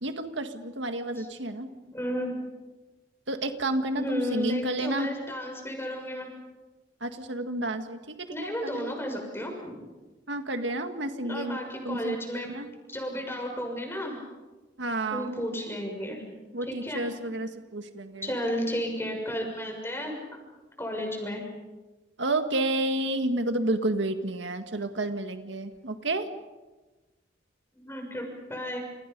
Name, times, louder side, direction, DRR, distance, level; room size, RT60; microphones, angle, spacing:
voice 1, 0.0-1.7 3.3-5.1 7.0-8.9 10.3-11.6 11.9-12.2 12.5-12.7 14.8-15.4 16.5-18.3 22.2-26.3, right 2 dB, 85° right, 7 dB, 1.9 m, -30 dB
voice 2, 1.9-2.4 4.0-6.3 8.3-9.9 11.2-12.6 12.9-14.2 15.1-16.2 16.7-17.1 18.2-20.1 20.8-21.5 27.7-28.8, equal, 15° left, 2 dB, 6.6 m, -33 dB
29.5 x 29.5 x 5.4 m, 1.2 s
head